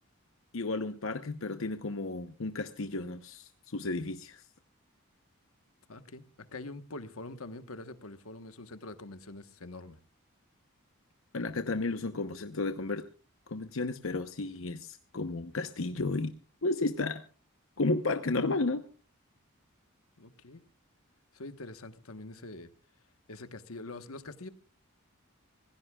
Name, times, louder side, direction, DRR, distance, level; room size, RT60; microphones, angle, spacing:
voice 1, 0.5-4.4 11.3-13.0 13.5-16.3 16.6-17.2 17.8-18.8, left 3 dB, 65° left, 0.8 m, -33 dB
voice 2, 5.9-6.2 6.5-10.0 20.2-20.6 21.3-22.7 23.3-24.5, left 2 dB, 85° left, 1.2 m, -44 dB
26.0 x 16.0 x 2.3 m
head